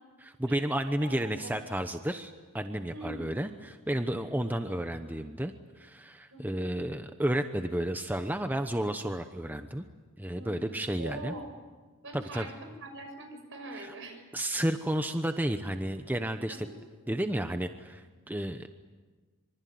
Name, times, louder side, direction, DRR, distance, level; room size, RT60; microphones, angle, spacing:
voice 1, 0.2-9.9 10.2-11.3 12.1-12.5 13.8-13.9 14.3-16.7 17.1-18.7, right 1 dB, 10° right, 7 dB, 1.0 m, -32 dB
voice 2, 1.0-1.5 2.9-3.4 6.3-6.6 10.3-10.6 11.0-11.5 12.0-14.2 16.5-16.8, right 2 dB, 60° right, 5 dB, 6.3 m, -43 dB
25.5 x 24.5 x 9.4 m, 1.4 s
head